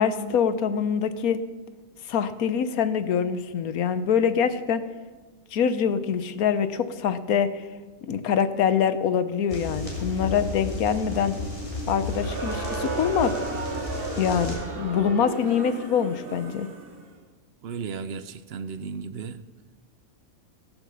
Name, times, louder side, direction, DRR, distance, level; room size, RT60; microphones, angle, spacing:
voice 1, 0.0-1.4 2.1-4.8 5.5-7.7 8.0-11.4 11.9-13.3 14.2-16.7, left 7 dB, 80° left, 12 dB, 1.3 m, -24 dB
sound 1, 9.5-14.6, left 2 dB, 20° left, 3.3 m, -33 dB
Crowd, 12.0-17.0, right 3 dB, 40° right, 1.5 m, -34 dB
voice 2, 17.6-19.4, right 5 dB, 60° right, 13 dB, 0.7 m, -34 dB
16.0 x 7.2 x 7.0 m, 1.3 s
omnidirectional pair, 1.5 m